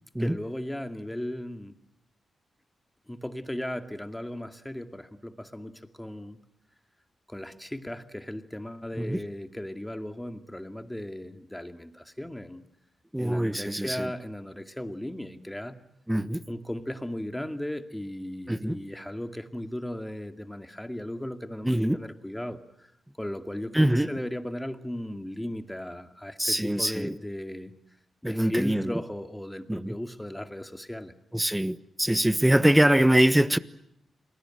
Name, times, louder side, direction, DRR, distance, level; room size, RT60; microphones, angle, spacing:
voice 1, 0.2-1.8 3.1-6.4 7.3-12.6 13.2-15.8 16.5-22.9 23.2-27.7 28.2-31.1, left 1 dB, 10° left, 2.3 m, -36 dB
voice 2, 13.1-14.1 16.1-16.4 18.5-18.8 21.6-22.0 23.7-24.1 26.4-27.1 28.2-28.8 29.7-29.9 31.3-33.6, right 1 dB, 10° right, 1.3 m, -23 dB
28.0 x 20.5 x 9.1 m
cardioid pair, 55°, 0 cm